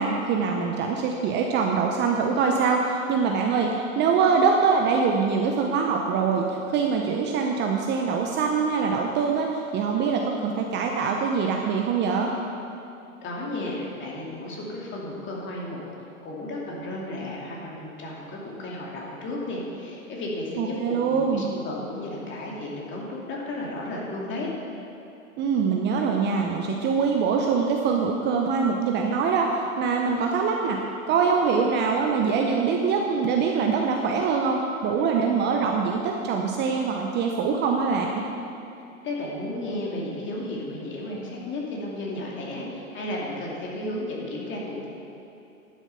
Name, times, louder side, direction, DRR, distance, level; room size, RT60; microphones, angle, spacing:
voice 1, 0.0-12.3 20.6-21.5 25.4-30.8 31.1-38.1, right 5 dB, 25° right, 1 dB, 0.7 m, -24 dB
voice 2, 13.2-20.8 21.0-24.5 39.0-44.9, left 1 dB, 25° left, -3 dB, 2.5 m, -33 dB
11.5 x 7.3 x 5.7 m, 2.8 s
hypercardioid pair, 110°, 41 cm